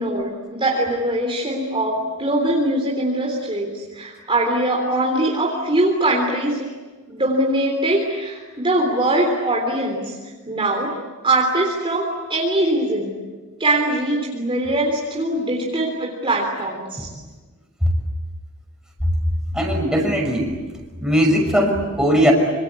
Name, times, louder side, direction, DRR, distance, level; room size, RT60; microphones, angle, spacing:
voice 1, 0.0-6.7 7.1-10.2 10.5-10.9 11.2-13.2 13.6-17.1, right 1 dB, 25° right, 0 dB, 3.5 m, -22 dB
voice 2, 19.5-20.5 21.0-22.3, equal, 5° right, 1 dB, 6.0 m, -18 dB
26.5 x 26.5 x 8.4 m, 1.3 s
head